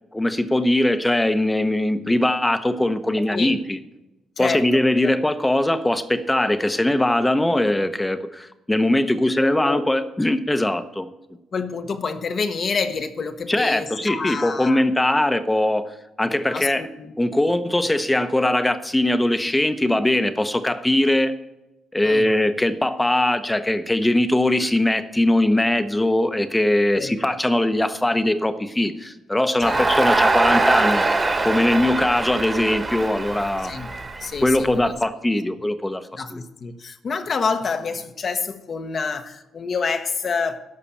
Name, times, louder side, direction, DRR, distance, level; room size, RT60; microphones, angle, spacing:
voice 1, 0.1-3.8 4.4-11.1 13.5-16.9 17.2-21.3 21.9-31.0 31.4-33.7 34.4-36.4, left 1 dB, 10° left, 10 dB, 0.9 m, -21 dB
voice 2, 4.4-4.7 5.0-5.1 9.4-9.9 11.5-14.8 16.5-17.1 22.0-22.3 26.9-27.1 29.6-29.8 33.6-33.9 34.2-34.9 36.1-40.6, left 5 dB, 45° left, 8 dB, 1.0 m, -28 dB
Crowd, 29.6-34.8, right 2 dB, 25° right, 1.4 m, -22 dB
12.5 x 5.8 x 8.7 m, 0.97 s
cardioid pair, 90°, 0 cm